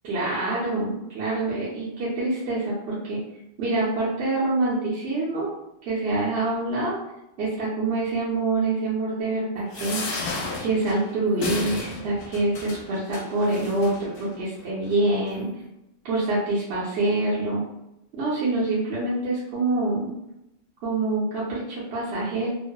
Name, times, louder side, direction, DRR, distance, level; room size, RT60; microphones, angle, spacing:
voice 1, 0.0-3.2 3.6-5.5 5.9-7.0 7.4-10.2 10.6-15.5 16.0-17.6 18.1-20.1 20.8-22.5, right 2 dB, 85° right, -8 dB, 1.0 m, -26 dB
sound 1, 9.7-14.3 14.9-15.0 15.3-15.4, left 3 dB, 65° left, 0.7 m, -33 dB
2.7 x 2.0 x 2.2 m, 0.87 s
omnidirectional pair, 1.1 m